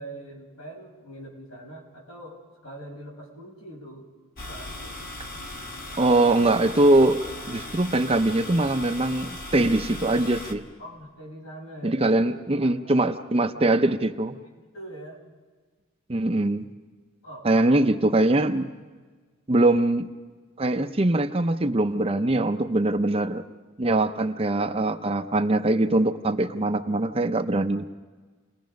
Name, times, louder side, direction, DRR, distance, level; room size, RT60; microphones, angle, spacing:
voice 1, 0.0-4.1 4.5-5.0 10.8-12.3 12.8-13.0 13.4-13.8 14.4-15.2 17.2-17.8 18.1-18.2, right 1 dB, 80° left, -1 dB, 5.9 m, -43 dB
sound 1, 4.4-10.5, left 1 dB, 45° left, 2.0 m, -38 dB
voice 2, 6.0-7.2 7.5-10.6 11.8-14.4 16.1-16.7 17.4-18.7 19.5-20.1 20.6-23.4 23.8-27.8, right 2 dB, 25° right, 8 dB, 0.6 m, -22 dB
29.0 x 20.0 x 5.2 m, 1.4 s
head